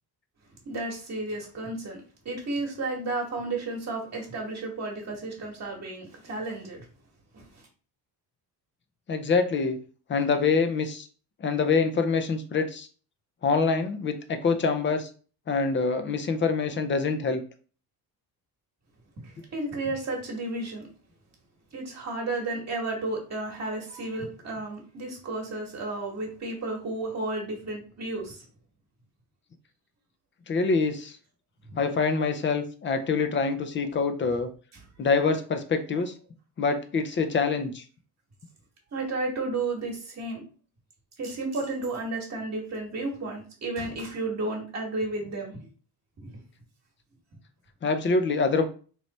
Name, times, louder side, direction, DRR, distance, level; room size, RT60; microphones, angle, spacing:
voice 1, 0.6-6.8 7.3-7.4 19.2-20.9 21.7-28.4 38.9-40.4 41.2-45.6 46.2-46.3, right 2 dB, 45° right, 1.2 m, -32 dB
voice 2, 9.1-9.8 10.1-11.1 11.4-12.9 13.4-15.1 15.5-17.4 30.5-31.2 31.8-34.5 35.0-36.1 36.6-37.8 47.8-48.6, left 4 dB, 30° left, 0.5 m, -25 dB
3.2 x 3.1 x 4.0 m
cardioid pair, 145°, 38 cm